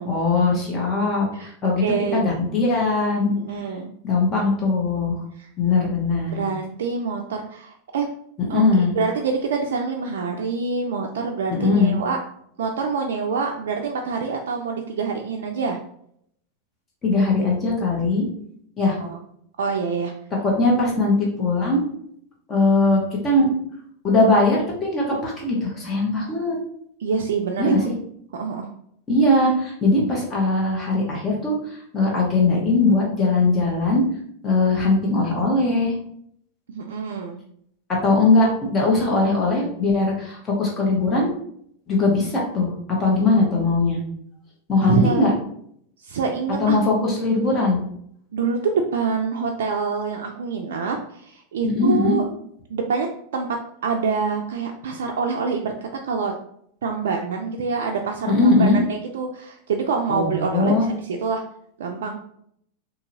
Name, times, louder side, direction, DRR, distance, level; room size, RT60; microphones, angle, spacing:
voice 1, 0.0-1.8 2.1-3.4 4.0-5.2 5.6-6.4 8.4-8.9 11.5-12.0 17.0-18.2 18.8-19.0 20.4-21.8 22.5-23.5 24.0-26.6 27.6-27.8 29.1-34.0 34.4-35.9 38.0-41.3 41.9-42.7 43.0-44.0 44.7-45.3 46.6-47.8 51.6-52.2 58.3-58.8 60.1-60.9, left 2 dB, 30° left, -2 dB, 1.2 m, -20 dB
voice 2, 1.8-2.3 3.4-3.9 5.4-5.5 6.3-8.1 8.5-8.6 9.0-12.2 12.6-15.8 19.0-19.2 19.6-20.1 26.2-26.3 27.0-27.7 28.3-28.7 36.7-37.4 44.8-45.3 46.0-46.8 48.3-52.3 52.7-53.6 53.8-56.3 56.8-61.4 61.8-62.2, right 5 dB, 75° right, 1 dB, 0.3 m, -26 dB
2.8 x 2.7 x 2.7 m, 0.68 s
hypercardioid pair, 95°, 0 cm